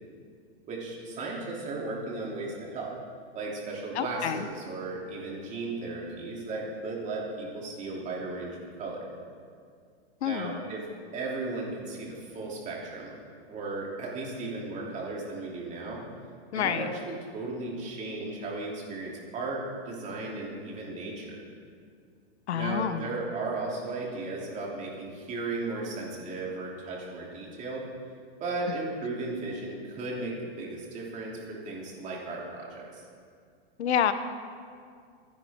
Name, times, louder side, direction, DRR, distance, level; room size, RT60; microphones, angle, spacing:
voice 1, 0.7-2.9 3.3-9.0 10.2-10.9 11.1-13.1 13.5-16.0 16.5-21.4 22.5-27.9 28.4-33.0, right 3 dB, 20° right, -3 dB, 3.2 m, -35 dB
voice 2, 3.9-4.5 10.2-10.6 16.5-16.9 22.5-23.1 33.8-34.1, left 9 dB, 80° left, 10 dB, 1.1 m, -28 dB
26.0 x 10.5 x 3.7 m, 2.2 s
hypercardioid pair, 150°, 33 cm